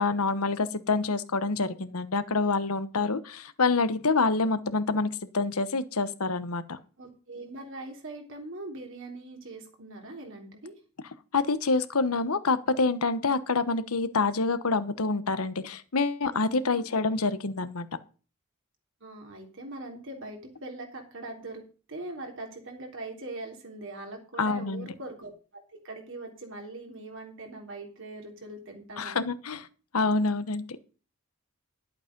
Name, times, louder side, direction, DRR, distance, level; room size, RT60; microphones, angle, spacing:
voice 1, 0.0-6.8 11.3-17.9 24.4-24.9 29.0-29.7 29.9-30.7, left 3 dB, 90° left, 12 dB, 1.1 m, -27 dB
voice 2, 7.0-10.7 16.6-16.8 19.0-29.2, right 2 dB, 60° right, 2 dB, 3.4 m, -41 dB
11.5 x 8.2 x 5.2 m, 0.36 s
head